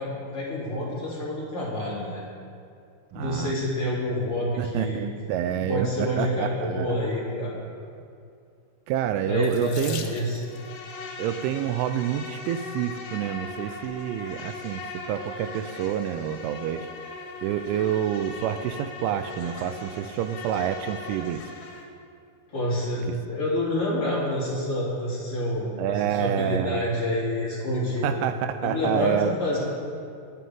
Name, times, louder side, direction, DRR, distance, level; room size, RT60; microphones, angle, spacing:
voice 1, 0.0-2.2 3.1-5.0 5.7-7.5 9.2-10.4 22.5-28.2 28.6-29.6, left 1 dB, 30° left, -7 dB, 3.5 m, -28 dB
voice 2, 3.1-3.5 4.6-7.0 8.9-10.1 11.2-14.8 15.1-16.9 17.4-21.4 23.1-23.2 25.8-26.9 28.0-29.4, right 10 dB, 85° right, 9 dB, 2.9 m, -28 dB
Water tap faucet / Sink (filling or washing), 9.4-10.7 11.7-12.1 12.8-12.9 13.2-13.4, left 8 dB, 85° left, 3.5 m, -40 dB
Insect, 10.4-21.8, left 3 dB, 65° left, 3.8 m, -39 dB
27.0 x 9.4 x 3.7 m, 2.4 s
omnidirectional pair, 5.8 m